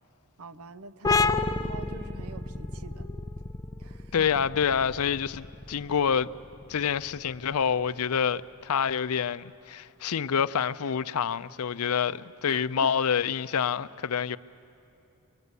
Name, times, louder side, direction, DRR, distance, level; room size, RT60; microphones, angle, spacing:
voice 1, 0.4-3.1 3.8-4.5 12.5-12.9, right 4 dB, 70° right, 0.7 m, -45 dB
sound 1, 1.0-8.3, left 3 dB, 15° left, 0.5 m, -31 dB
voice 2, 4.1-6.3 6.7-14.4, left 7 dB, 75° left, 0.5 m, -27 dB
25.0 x 21.0 x 8.2 m
head